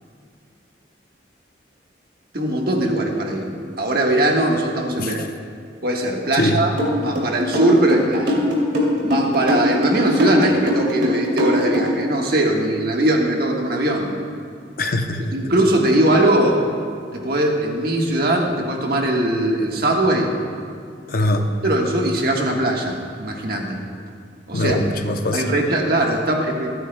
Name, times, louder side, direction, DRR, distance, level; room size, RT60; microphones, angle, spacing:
voice 1, 2.3-5.2 5.8-6.7 7.0-8.5 9.0-14.1 15.3-16.6 17.1-20.3 21.2-21.3 21.6-23.8 24.5-24.8 25.3-26.7, right 1 dB, 55° right, 0 dB, 1.4 m, -20 dB
sound 1, 6.8-12.0, left 1 dB, 75° right, 2.6 m, -21 dB
voice 2, 14.8-15.5 21.1-21.5 24.5-25.4, left 1 dB, 50° left, 5 dB, 0.7 m, -22 dB
24.5 x 9.1 x 2.2 m, 2.3 s
head